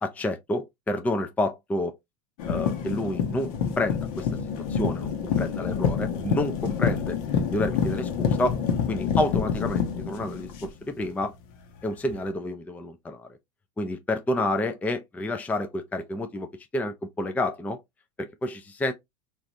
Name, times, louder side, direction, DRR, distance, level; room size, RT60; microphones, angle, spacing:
voice 1, 0.0-1.9 2.4-4.3 4.7-7.2 7.5-8.6 8.9-11.3 11.8-13.3 13.8-17.8 18.2-18.9, left 1 dB, 10° left, 0.4 m, -29 dB
sound 1, 2.4-11.2 12.1-12.2, left 7 dB, 70° left, 1.0 m, -27 dB
3.2 x 2.5 x 2.5 m
supercardioid pair, 110°, 19 cm